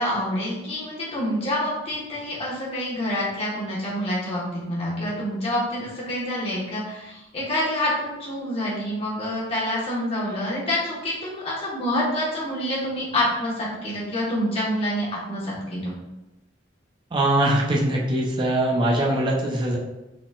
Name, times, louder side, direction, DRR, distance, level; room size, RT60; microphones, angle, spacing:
voice 1, 0.0-15.9, left 1 dB, 30° left, -7 dB, 1.3 m, -27 dB
voice 2, 17.1-19.8, right 1 dB, 25° right, -3 dB, 0.6 m, -22 dB
4.0 x 3.9 x 2.4 m, 0.99 s
head